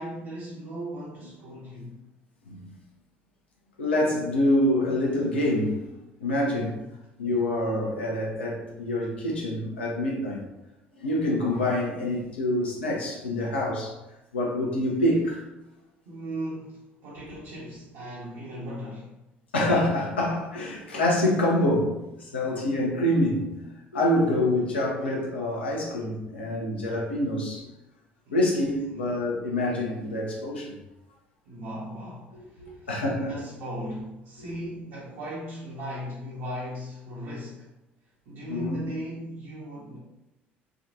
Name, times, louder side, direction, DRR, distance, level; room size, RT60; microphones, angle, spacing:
voice 1, 0.0-1.9 6.3-6.8 16.0-19.1 28.3-28.5 28.9-29.1 31.4-32.9 33.1-37.7 38.3-40.0, equal, 60° right, -7 dB, 0.9 m, -37 dB
voice 2, 3.8-5.8 6.2-6.7 7.2-10.4 11.0-13.9 14.3-15.4 19.5-23.5 23.9-27.7 28.3-30.7 32.6-33.3 38.5-38.8, left 1 dB, 80° left, -3 dB, 0.7 m, -26 dB
3.6 x 2.3 x 2.7 m, 0.95 s
figure-of-eight pair, 55°, 6 cm